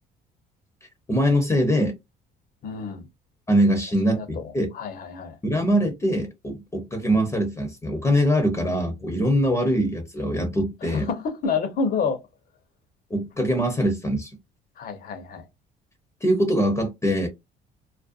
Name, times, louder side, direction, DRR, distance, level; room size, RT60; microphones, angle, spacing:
voice 1, 1.1-1.9 3.5-4.7 5.4-11.1 13.1-14.3 16.2-17.3, equal, 15° left, 0.7 m, -23 dB
voice 2, 2.6-3.1 4.1-5.4 10.8-12.2 14.8-15.5, left 5 dB, 60° left, 0.8 m, -29 dB
2.5 x 2.1 x 2.4 m
cardioid pair, 110°, 17 cm